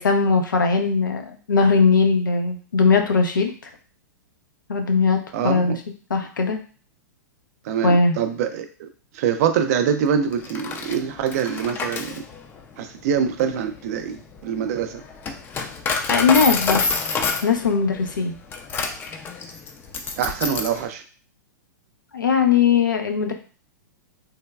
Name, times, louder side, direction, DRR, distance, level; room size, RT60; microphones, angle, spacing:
voice 1, 0.0-3.5 4.7-5.7 6.1-6.6 7.8-8.2 16.1-16.8 17.4-18.4 22.1-23.3, left 5 dB, 90° left, 4 dB, 0.6 m, -19 dB
voice 2, 5.3-5.8 7.6-8.9 9.1-12.2 12.8-15.0 20.2-21.0, right 8 dB, 55° right, 8 dB, 0.4 m, -24 dB
Coin (dropping), 10.3-20.8, left 4 dB, 20° left, 0.4 m, -28 dB
3.2 x 2.2 x 2.2 m, 0.39 s
hypercardioid pair, 115°, 10 cm